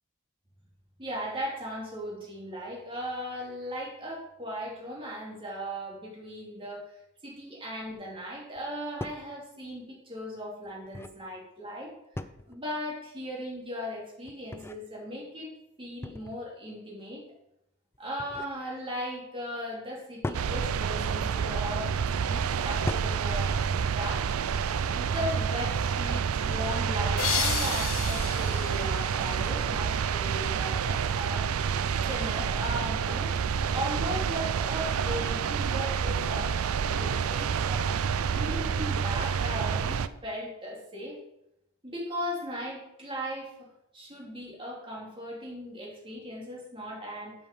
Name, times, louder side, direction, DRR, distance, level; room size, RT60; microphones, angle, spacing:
voice 1, 1.0-6.9 7.2-15.5 15.8-17.2 18.0-22.0 22.2-23.5 23.9-24.3 24.6-31.4 32.1-33.3 33.7-37.9 38.3-41.2 41.8-43.7 43.9-47.4, equal, 25° right, -3 dB, 2.7 m, -37 dB
sound 1, 8.6-8.7 9.0-9.3 10.6-11.2 12.1-12.6 14.2-14.8 16.0-16.5 17.9-18.6 20.2-20.5 21.6-21.9 22.9-23.2, left 1 dB, 10° left, 0.4 m, -38 dB
sound 2, 20.3-40.1, right 6 dB, 90° right, 0.4 m, -28 dB
sound 3, 27.2-29.9, left 9 dB, 75° left, 0.9 m, -33 dB
7.9 x 5.4 x 6.7 m, 0.84 s
head